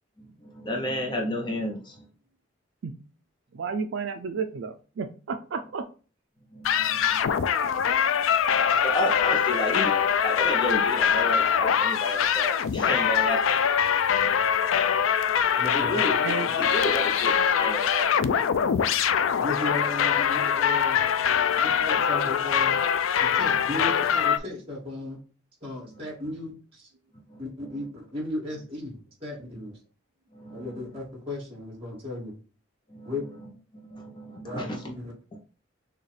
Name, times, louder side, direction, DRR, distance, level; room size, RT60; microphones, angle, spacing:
voice 1, 0.4-2.0 6.5-7.3 8.8-9.9 10.2-13.6 15.6-16.2 16.6-18.1 27.3-27.4 30.3-30.8 32.9-33.1 33.9-34.9 35.3-35.4, left 1 dB, 25° left, 1 dB, 0.7 m, -31 dB
voice 2, 3.5-5.8 16.2-16.5, right 5 dB, 65° right, 7 dB, 0.4 m, -32 dB
sound 1, 6.6-24.4, left 8 dB, 85° left, 0.4 m, -23 dB
voice 3, 15.6-16.1 16.6-16.7 19.4-21.0 21.6-22.8 23.3-25.2 25.6-26.9 27.4-29.8 30.5-32.3 33.0-33.2 34.4-35.1, left 2 dB, 30° right, -2 dB, 2.3 m, -35 dB
6.5 x 2.3 x 3.3 m, 0.37 s
head